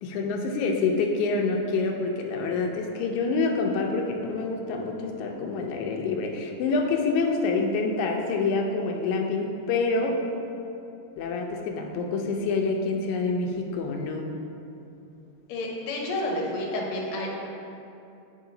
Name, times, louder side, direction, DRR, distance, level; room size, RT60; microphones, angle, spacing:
voice 1, 0.0-10.2 11.2-14.3, left 3 dB, 85° left, 2 dB, 2.0 m, -27 dB
voice 2, 15.5-17.5, left 1 dB, 65° left, -2 dB, 1.4 m, -30 dB
8.3 x 3.1 x 3.8 m, 2.7 s
omnidirectional pair, 3.3 m